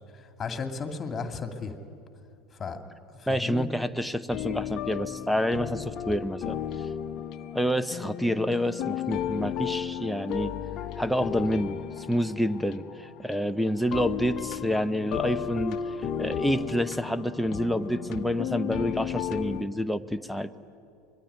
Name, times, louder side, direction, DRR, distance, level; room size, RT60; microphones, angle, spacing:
voice 1, 0.4-1.7 2.6-2.8 3.2-3.7, left 5 dB, 25° left, 6 dB, 2.5 m, -34 dB
voice 2, 3.3-6.6 7.5-10.5 11.0-15.8 16.2-20.5, equal, ahead, 9 dB, 0.9 m, -28 dB
sound 1, 4.3-19.6, left 9 dB, 45° left, 1.2 m, -34 dB
25.0 x 20.5 x 9.8 m, 2.5 s
figure-of-eight pair, 75°, 0 cm